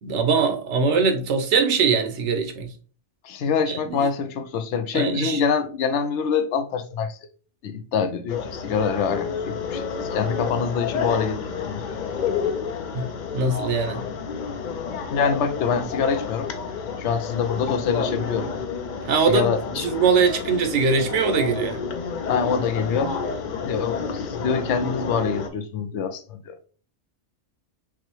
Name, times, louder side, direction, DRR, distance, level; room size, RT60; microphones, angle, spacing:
voice 1, 0.0-2.7 3.7-4.1 4.9-5.4 12.9-13.1 13.3-14.0 19.1-21.8, right 5 dB, 85° right, 1.0 m, -22 dB
voice 2, 3.2-7.2 7.6-12.0 15.1-16.5 17.0-18.5 19.3-19.9 22.3-23.2 23.6-26.6, left 6 dB, 80° left, 0.9 m, -25 dB
sound 1, 8.3-25.5, left 5 dB, 55° left, 0.5 m, -30 dB
6.0 x 2.1 x 3.0 m
omnidirectional pair, 1.2 m